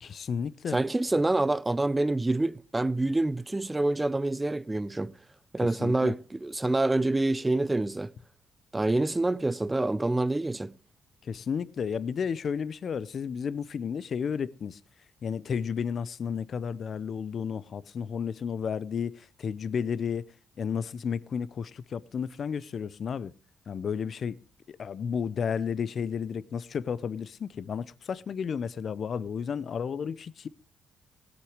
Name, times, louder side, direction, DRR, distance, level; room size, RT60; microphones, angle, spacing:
voice 1, 0.0-0.8 5.6-6.1 11.2-14.8 15.2-20.3 20.6-23.3 23.7-24.4 24.7-30.5, left 7 dB, 55° left, 0.6 m, -32 dB
voice 2, 0.7-5.1 5.5-8.1 8.7-10.7, right 2 dB, 15° right, 0.5 m, -27 dB
17.0 x 8.4 x 4.9 m
cardioid pair, 90°, 0 cm